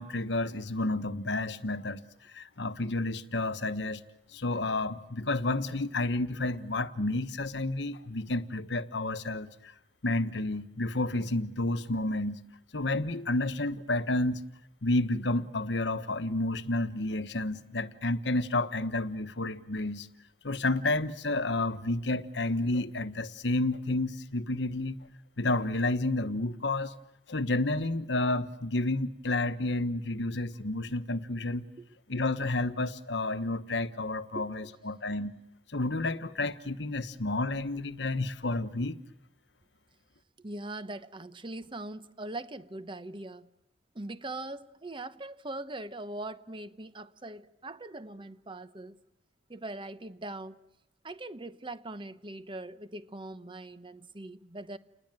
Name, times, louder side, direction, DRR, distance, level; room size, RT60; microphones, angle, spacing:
voice 1, 0.0-2.0 2.3-4.0 4.3-9.7 10.0-12.4 12.7-14.4 14.8-20.1 20.4-25.0 25.4-27.0 27.3-31.7 32.1-35.3 35.7-39.0, left 2 dB, 65° left, 1.2 m, -30 dB
voice 2, 34.3-34.7 40.4-43.5 43.9-49.0 49.5-50.6 51.0-54.8, right 2 dB, 25° right, 1.0 m, -41 dB
29.5 x 20.5 x 9.1 m
head